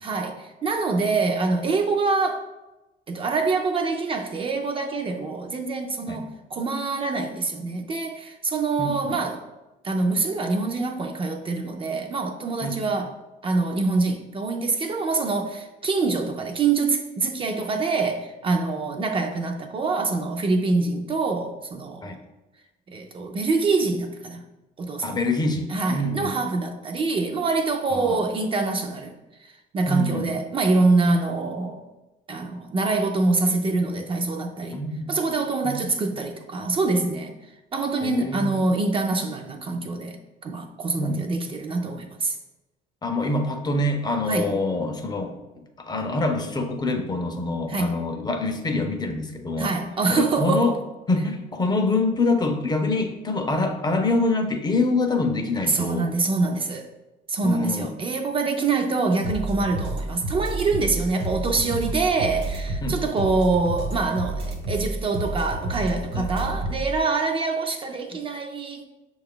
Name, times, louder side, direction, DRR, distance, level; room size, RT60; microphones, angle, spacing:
voice 1, 0.0-2.5 3.1-9.4 9.8-13.1 13.4-22.2 22.9-24.4 24.8-25.2 25.7-29.1 29.7-31.8 32.3-34.8 35.1-37.3 37.7-42.4 44.3-44.6 47.7-47.9 49.6-50.7 55.6-56.9 57.3-68.8, right 3 dB, 30° right, 0.4 m, -25 dB
voice 2, 8.8-9.2 12.6-12.8 22.0-22.1 25.0-26.3 27.9-28.2 29.9-30.3 34.7-35.1 35.6-35.8 38.0-38.5 41.0-41.3 43.0-45.3 45.8-49.7 50.1-50.8 51.1-56.1 57.4-57.9 62.8-63.0 66.1-66.5, left 2 dB, 25° left, 0.5 m, -25 dB
sound 1, 59.2-67.0, right 2 dB, 80° right, 0.9 m, -30 dB
6.1 x 2.4 x 3.7 m
cardioid pair, 110°, 17 cm